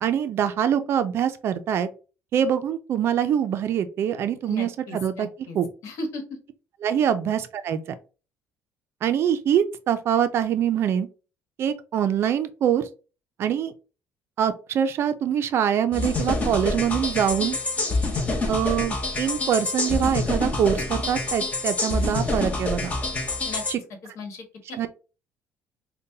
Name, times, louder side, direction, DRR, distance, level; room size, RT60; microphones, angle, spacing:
voice 1, 0.0-1.9 2.3-5.3 5.5-5.7 6.8-7.8 9.0-11.1 11.6-12.9 13.4-13.7 14.4-17.6 18.5-22.9 23.7-23.8 24.8-24.9, right 9 dB, 50° right, 10 dB, 0.4 m, -24 dB
voice 2, 4.5-5.6 5.8-6.4 23.4-23.6 24.1-24.9, left 2 dB, 65° left, 5 dB, 1.2 m, -36 dB
sound 1, 15.9-23.7, left 2 dB, 25° left, 0.9 m, -27 dB
5.2 x 2.2 x 2.7 m, 0.34 s
cardioid pair, 145°, 6 cm